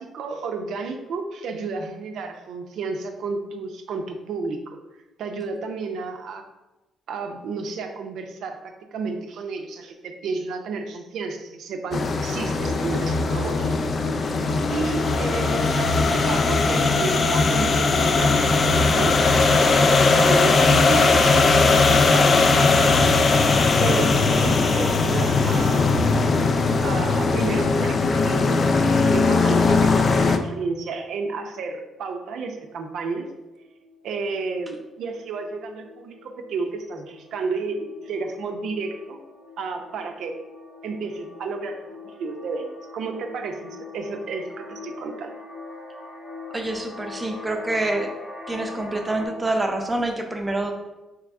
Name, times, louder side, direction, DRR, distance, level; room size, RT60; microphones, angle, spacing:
voice 1, 0.0-4.8 5.2-6.4 7.1-8.6 8.9-13.8 14.7-22.5 23.8-26.2 26.8-33.3 34.0-39.2 39.6-40.4 40.8-41.8 42.0-45.4, right 4 dB, 75° right, 5 dB, 0.5 m, -32 dB
sound 1, 11.9-30.4, left 3 dB, 45° left, 0.3 m, -19 dB
sound 2, 31.9-32.1 32.4-32.7 33.0-49.3, left 3 dB, 70° left, 1.3 m, -43 dB
voice 2, 46.5-48.1 48.5-50.7, right 2 dB, 20° right, 3 dB, 0.6 m, -26 dB
3.4 x 3.0 x 3.5 m, 1.0 s
cardioid pair, 90°, 0 cm